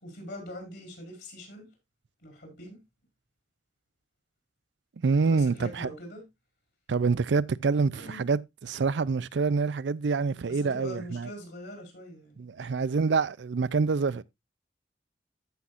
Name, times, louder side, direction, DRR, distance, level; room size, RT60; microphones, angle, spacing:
voice 1, 0.0-1.7 2.2-2.8 5.3-6.2 7.9-8.2 10.5-13.0, equal, 65° left, 4.6 m, -43 dB
voice 2, 5.0-5.9 6.9-11.3 12.4-14.2, right 4 dB, 75° right, 0.5 m, -26 dB
14.0 x 5.8 x 2.4 m
head